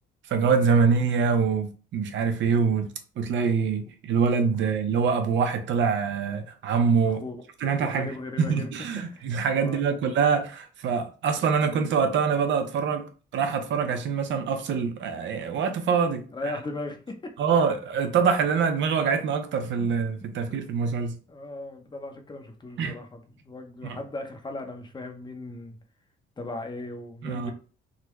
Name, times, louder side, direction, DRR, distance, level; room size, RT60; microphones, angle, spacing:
voice 1, 0.3-2.9 3.2-7.2 7.6-8.1 8.4-16.5 17.4-21.1 22.8-23.0 23.8-24.0 27.2-27.5, right 5 dB, 70° right, 0.7 m, -25 dB
voice 2, 7.0-7.4 7.8-8.7 9.1-9.8 16.3-17.3 19.8-19.9 21.3-25.8 26.4-27.5, left 2 dB, 20° left, 0.7 m, -37 dB
3.8 x 2.2 x 3.0 m
cardioid pair, 90°, 20 cm